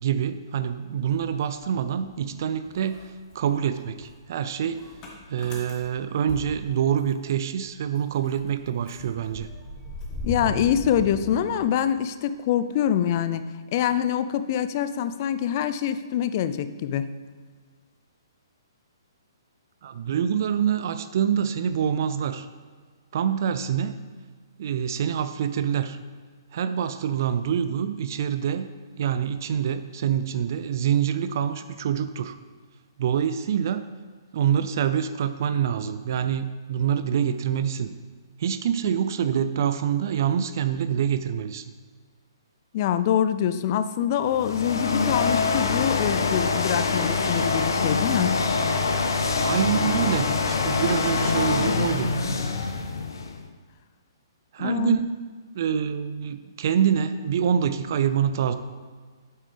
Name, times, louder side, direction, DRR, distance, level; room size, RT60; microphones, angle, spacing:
voice 1, 0.0-3.0 3.3-4.9 5.3-9.5 19.8-22.5 23.1-24.0 24.6-26.0 26.5-28.7 29.0-32.4 33.0-33.8 34.3-38.0 38.4-41.6 49.4-52.1 54.5-55.1 55.5-58.5, right 8 dB, 50° right, 11 dB, 0.4 m, -26 dB
Motor vehicle (road) / Engine starting, 1.1-2.4 2.6-7.3 7.6-7.7 8.0-12.1, left 2 dB, 25° left, 1.6 m, -39 dB
voice 2, 10.2-13.4 13.7-17.1 42.7-48.3 54.6-55.0, left 9 dB, 40° left, 12 dB, 0.4 m, -25 dB
sound 1, 44.2-53.4, left 4 dB, 65° left, 0.9 m, -25 dB
8.8 x 8.3 x 3.4 m, 1.6 s
figure-of-eight pair, 125°, 2 cm